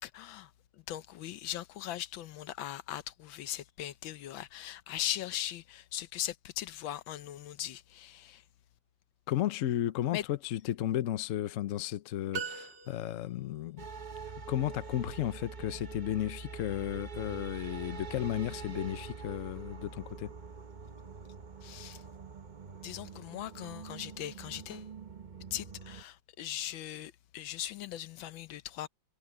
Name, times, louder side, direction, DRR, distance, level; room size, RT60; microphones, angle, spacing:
voice 1, 0.0-8.4 10.1-10.2 21.6-22.0 22.8-24.9 25.5-28.9, left 12 dB, 80° left, 1.5 m, -39 dB
voice 2, 9.3-13.9 14.5-20.3, left 12 dB, 65° left, 0.8 m, -34 dB
sound 1, 12.3-13.5, right 6 dB, 65° right, 3.6 m, -40 dB
sound 2, 13.8-26.0, right 5 dB, 35° right, 0.8 m, -45 dB
omnidirectional pair, 2.1 m